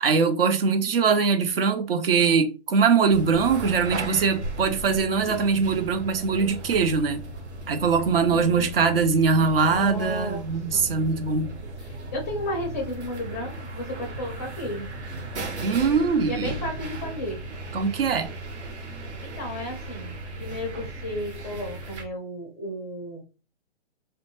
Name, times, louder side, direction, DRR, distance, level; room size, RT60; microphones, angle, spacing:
voice 1, 0.0-7.2 7.7-11.5 15.6-16.5 17.7-18.3, right 5 dB, 60° right, 0.7 m, -22 dB
sound 1, 3.1-22.0, right 2 dB, 80° right, 1.2 m, -36 dB
voice 2, 8.3-8.7 9.7-10.9 11.8-15.0 16.3-17.4 19.2-23.2, left 1 dB, 15° left, 0.5 m, -34 dB
2.5 x 2.1 x 2.9 m
hypercardioid pair, 145°, 33 cm